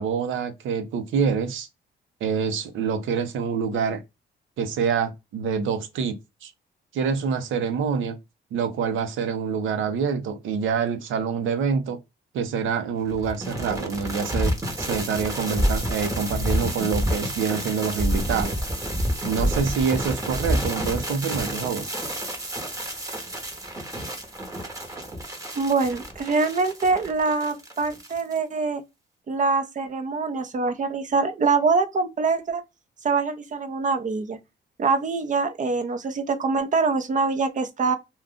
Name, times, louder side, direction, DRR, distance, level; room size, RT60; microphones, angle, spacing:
voice 1, 0.0-1.7 2.2-4.0 4.6-6.5 6.9-8.2 8.5-12.0 12.3-18.6 19.2-21.9, right 6 dB, 80° right, 0.7 m, -26 dB
sound 1, 13.1-28.4, equal, 15° right, 1.0 m, -29 dB
voice 2, 25.5-28.8 29.3-32.6 33.0-34.4 34.8-38.0, right 4 dB, 40° right, 0.7 m, -24 dB
2.4 x 2.3 x 3.6 m
cardioid pair, 90°, 20 cm